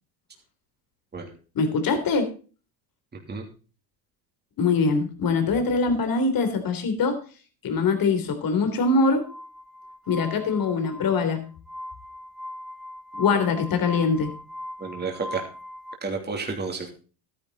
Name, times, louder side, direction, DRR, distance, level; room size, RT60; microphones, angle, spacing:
voice 1, 1.6-2.3 4.6-7.2 7.6-9.2 10.1-11.5 13.2-14.3, left 4 dB, 45° left, 7 dB, 3.4 m, -23 dB
Glass, 9.2-16.0, left 1 dB, ahead, 1.2 m, -40 dB
voice 2, 14.8-15.4 16.0-16.9, right 4 dB, 20° right, 2 dB, 3.0 m, -31 dB
12.5 x 10.5 x 4.1 m, 0.37 s
supercardioid pair, 105°, 46 cm